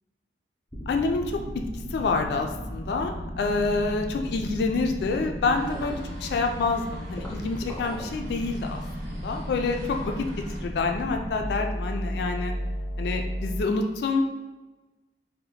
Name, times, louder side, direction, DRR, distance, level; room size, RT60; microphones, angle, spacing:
sound 1, 0.7-13.6, equal, 5° left, 0.5 m, -34 dB
voice 1, 0.9-1.6 1.9-10.3 10.6-12.5 13.0-14.2, left 3 dB, 70° left, 3 dB, 0.3 m, -27 dB
sound 2, 5.5-10.6, right 1 dB, 50° right, 0.7 m, -47 dB
2.7 x 2.1 x 4.1 m, 1.2 s
head